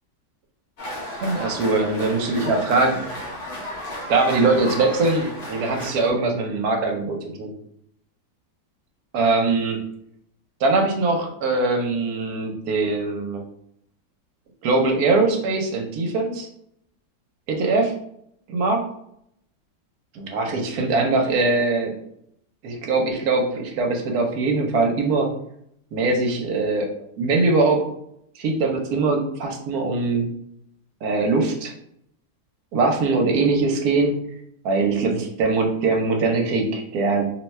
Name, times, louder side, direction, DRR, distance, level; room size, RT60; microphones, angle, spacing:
sound 1, 0.8-6.1, equal, 60° left, 0.7 m, -33 dB
voice 1, 1.2-3.3 4.1-7.5 9.1-9.8 10.6-13.4 14.6-16.5 17.5-17.8 18.5-18.8 20.1-21.9 22.6-25.3 25.9-26.9 27.2-27.8 28.4-30.3 31.0-31.7 32.7-34.1 34.6-37.3, right 3 dB, 70° right, 2 dB, 1.1 m, -22 dB
2.8 x 2.2 x 3.1 m, 0.72 s
omnidirectional pair, 1.8 m